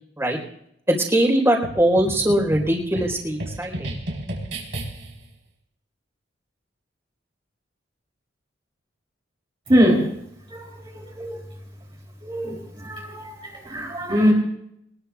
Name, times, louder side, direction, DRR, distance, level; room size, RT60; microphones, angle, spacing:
voice 1, 0.9-3.9, right 1 dB, 15° right, 0 dB, 4.1 m, -21 dB
sound 1, 1.6-5.3, right 1 dB, 65° right, 4.4 m, -33 dB
voice 2, 9.7-10.1 10.5-10.7 10.9-11.4 12.2-14.3, equal, 30° right, -5 dB, 3.3 m, -22 dB
23.5 x 21.0 x 2.4 m, 0.75 s
head